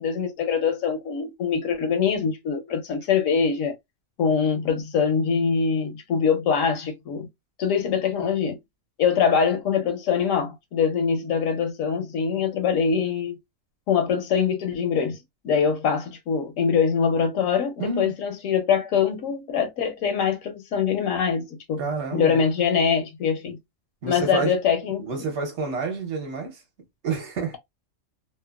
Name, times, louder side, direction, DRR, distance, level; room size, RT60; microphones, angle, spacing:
voice 1, 0.0-3.8 4.2-7.3 7.6-8.6 9.0-13.4 13.9-15.2 15.4-21.8 22.1-23.6 24.0-25.3, left 6 dB, 85° left, 1.0 m, -23 dB
voice 2, 17.8-18.1 21.8-22.4 24.0-24.5 25.0-26.6 27.0-27.6, right 4 dB, 60° right, 1.1 m, -29 dB
2.9 x 2.1 x 2.2 m
omnidirectional pair, 1.4 m